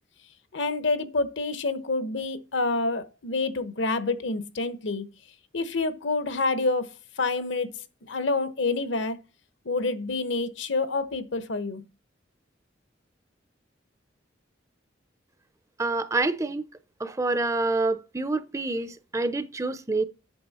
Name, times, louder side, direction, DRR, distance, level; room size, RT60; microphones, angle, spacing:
voice 1, 0.5-5.1 5.5-6.9 7.2-9.2 9.6-11.8, left 3 dB, 70° left, 1.0 m, -28 dB
voice 2, 15.8-16.7 17.0-20.0, right 3 dB, 15° right, 0.5 m, -27 dB
8.6 x 6.5 x 4.1 m
head